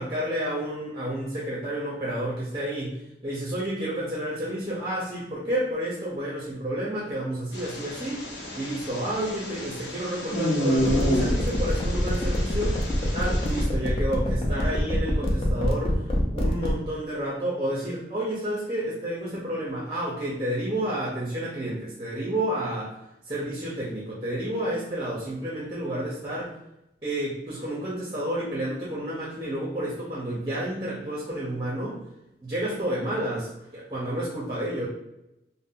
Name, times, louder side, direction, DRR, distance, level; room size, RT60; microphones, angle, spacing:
voice 1, 0.0-3.0 3.2-8.2 8.5-12.8 13.1-16.0 16.3-22.9 23.3-26.5 27.0-32.0 32.4-34.9, right 1 dB, 25° right, -5 dB, 0.6 m, -30 dB
sound 1, 7.5-13.7, equal, 90° left, 0.8 m, -30 dB
sound 2, 10.8-16.7, left 1 dB, 30° left, 0.4 m, -25 dB
2.5 x 2.0 x 3.6 m, 0.87 s
head